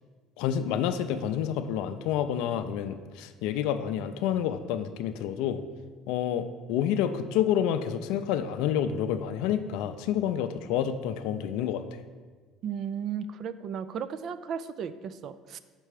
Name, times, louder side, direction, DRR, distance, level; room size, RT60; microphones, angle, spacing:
voice 1, 0.4-5.6 6.1-11.8, left 9 dB, 75° left, 10 dB, 0.4 m, -29 dB
voice 2, 12.6-15.6, right 7 dB, 55° right, 13 dB, 0.3 m, -35 dB
5.9 x 4.4 x 4.8 m, 1.4 s
supercardioid pair, 85°, 0 cm